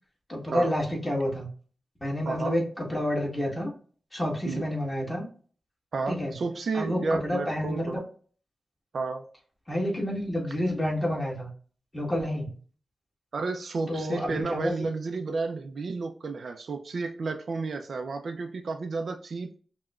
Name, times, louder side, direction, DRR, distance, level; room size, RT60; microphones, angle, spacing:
voice 1, 0.3-1.5 2.0-3.7 4.1-5.3 6.1-6.3 6.7-8.0 9.7-11.5 11.9-12.5 13.9-14.7, equal, 15° left, -2 dB, 1.5 m, -29 dB
voice 2, 2.2-2.6 4.4-4.7 5.9-8.0 8.9-9.2 13.3-19.6, right 3 dB, 65° right, 6 dB, 0.4 m, -32 dB
5.6 x 2.1 x 2.3 m, 0.42 s
wide cardioid pair, 110°, 0 cm